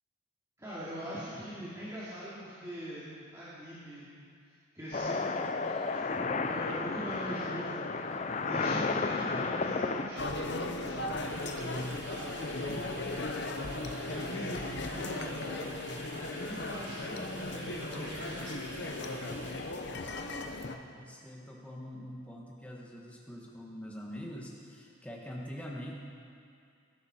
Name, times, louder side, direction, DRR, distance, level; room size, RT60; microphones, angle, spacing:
voice 1, 0.6-3.1 3.3-4.1 4.7-18.5, equal, 15° right, -12 dB, 2.6 m, -42 dB
sound 1, 4.9-10.1, left 4 dB, 35° left, 0.5 m, -32 dB
sound 2, 10.2-20.8, left 2 dB, 55° left, 0.8 m, -37 dB
sound 3, 11.2-19.8, right 1 dB, 75° right, 2.5 m, -48 dB
voice 2, 20.4-25.9, equal, 5° left, -2 dB, 1.5 m, -44 dB
18.5 x 11.0 x 4.4 m, 2.4 s
head